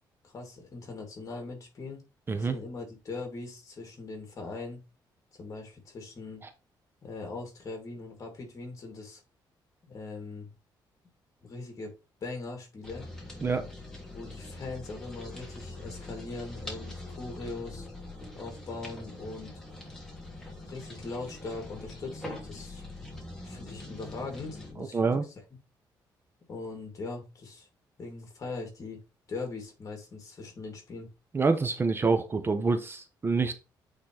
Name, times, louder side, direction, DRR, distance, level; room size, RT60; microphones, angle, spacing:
voice 1, 0.2-2.0 2.4-4.8 5.4-6.4 7.0-9.2 9.8-10.5 11.4-11.9 12.2-13.1 14.1-17.9 18.3-19.5 20.7-22.8 23.2-25.2 26.5-27.7 28.0-29.0 29.3-31.1, left 3 dB, 45° left, 2 dB, 2.9 m, -40 dB
sound 1, 12.8-24.7, left 2 dB, 5° left, 2.5 m, -43 dB
voice 2, 24.8-25.2 31.3-33.5, right 4 dB, 30° right, 9 dB, 0.8 m, -26 dB
8.7 x 3.9 x 3.4 m, 0.29 s
cardioid pair, 115°, 8 cm